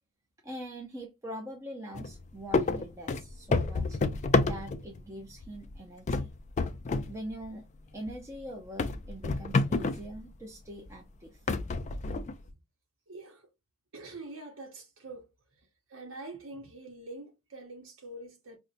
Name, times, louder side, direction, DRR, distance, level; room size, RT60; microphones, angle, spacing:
voice 1, 0.4-4.0 4.4-6.3 7.0-11.5, right 1 dB, 15° right, 0.6 m, -43 dB
sound 1, 1.9-2.2 2.5-5.0 5.4-5.8 6.1-7.1 7.4-7.5 8.1-8.2 8.8-10.1 10.8-10.9 11.5-12.5, left 3 dB, 35° left, 0.3 m, -29 dB
voice 2, 13.1-13.5 13.9-15.3 15.9-18.6, right 2 dB, 75° right, 0.9 m, -45 dB
5.2 x 2.1 x 2.5 m
head